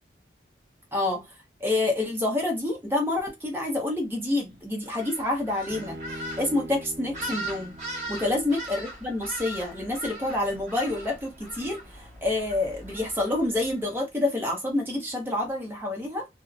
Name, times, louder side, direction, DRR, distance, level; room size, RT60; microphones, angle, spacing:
voice 1, 0.9-1.2 1.6-6.0 6.4-7.8 8.1-16.3, left 2 dB, 15° right, 0.8 m, -28 dB
sound 1, 4.8-13.9, right 1 dB, 40° right, 1.3 m, -40 dB
Bowed string instrument, 5.7-9.0, right 1 dB, 60° right, 0.5 m, -42 dB
2.6 x 2.1 x 2.5 m
head